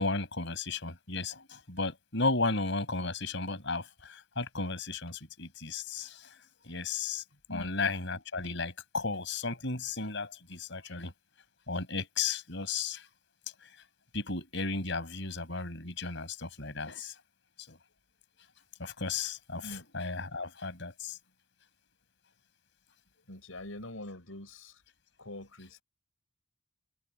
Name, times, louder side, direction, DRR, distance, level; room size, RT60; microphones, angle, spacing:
voice 1, 0.0-6.3 6.6-7.2 7.5-11.1 11.7-13.1 14.1-17.1 17.7-17.8 18.8-21.2, left 3 dB, 60° left, 5.8 m, -34 dB
voice 2, 23.3-24.8 25.2-25.8, left 1 dB, 80° left, 5.7 m, -44 dB
head